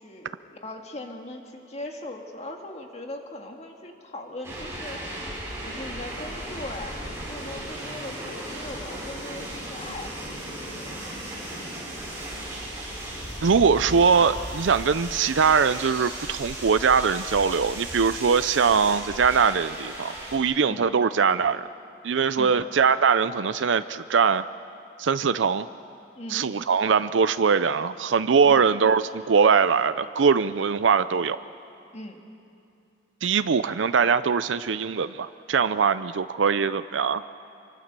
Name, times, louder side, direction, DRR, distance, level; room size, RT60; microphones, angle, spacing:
voice 1, 0.0-5.0 5.6-11.1 20.7-21.0 22.4-22.6 26.2-26.5 28.4-28.7 31.9-32.2, left 1 dB, 35° left, 2 dB, 2.0 m, -40 dB
sound 1, 4.4-20.4, right 1 dB, 15° right, 7.8 m, -36 dB
voice 2, 13.4-21.7 22.0-24.4 25.0-25.7 26.3-31.4 33.2-37.3, right 6 dB, 90° right, 13 dB, 0.5 m, -22 dB
26.0 x 24.0 x 6.8 m, 2.5 s
head